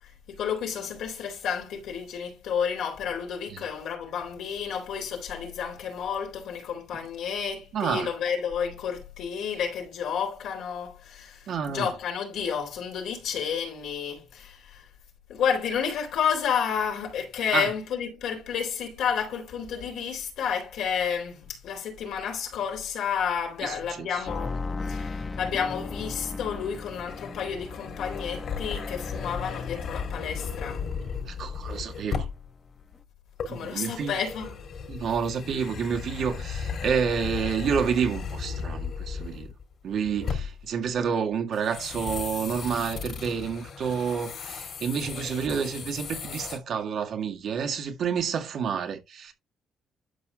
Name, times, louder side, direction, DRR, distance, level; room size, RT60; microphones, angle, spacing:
voice 1, 0.0-14.9 15.3-30.9 33.5-34.6, left 7 dB, 80° left, 3.6 m, -31 dB
voice 2, 7.7-8.1 11.5-11.9 17.5-17.7 23.6-24.2 31.3-32.3 33.5-34.1 34.9-39.5 39.8-49.3, right 7 dB, 65° right, 1.8 m, -29 dB
sound 1, 24.3-31.7 32.0-32.7 32.9-33.0, left 3 dB, 30° left, 0.7 m, -37 dB
sound 2, 27.1-32.5 33.4-39.7 40.1-40.6 41.5-46.6, left 6 dB, 65° left, 3.6 m, -36 dB
12.0 x 5.8 x 2.4 m
cardioid pair, 90°, 0 cm